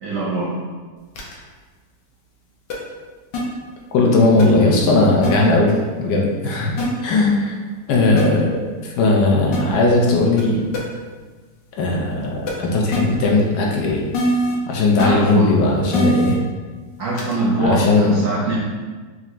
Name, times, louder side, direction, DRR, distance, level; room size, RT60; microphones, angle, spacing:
voice 1, 0.0-0.5 15.0-15.6 17.0-18.6, right 2 dB, 65° right, -5 dB, 0.8 m, -23 dB
sound 1, 1.2-1.3 2.7-2.8 3.3-3.4 4.4-4.5 5.2-5.3 6.8-6.9 8.2-8.3 9.5-9.6 10.4-10.5 10.7-10.8 12.5-12.6 12.9-13.0 14.1-14.6 15.0-15.1 15.9-16.3 17.2-17.3, equal, 90° left, 1.4 m, -21 dB
voice 2, 3.9-5.7 6.0-6.7 7.0-7.5 7.9-8.6 9.0-10.6 11.8-14.0 14.7-16.4 17.6-18.2, left 2 dB, 70° left, -2 dB, 1.1 m, -17 dB
4.3 x 2.5 x 2.9 m, 1.4 s
omnidirectional pair, 1.9 m